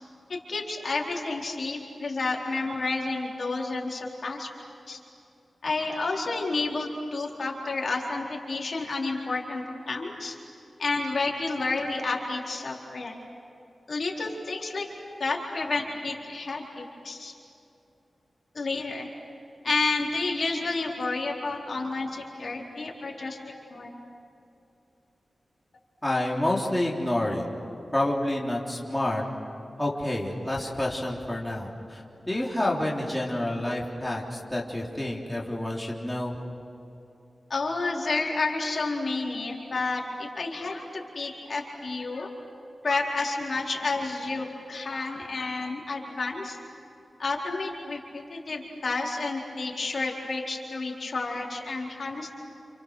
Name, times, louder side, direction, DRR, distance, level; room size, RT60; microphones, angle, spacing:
voice 1, 0.3-4.5 4.9-5.0 5.6-10.4 10.8-13.2 13.9-14.9 15.2-17.3 18.5-19.1 19.6-23.4 23.7-23.9 37.5-42.3 42.8-46.6 47.2-52.3, left 3 dB, 60° left, -2 dB, 4.2 m, -30 dB
voice 2, 26.0-27.5 27.9-29.2 29.8-36.3, left 1 dB, 10° left, -3 dB, 3.6 m, -28 dB
29.5 x 29.5 x 6.5 m, 2.8 s
wide cardioid pair, 110°, 0 cm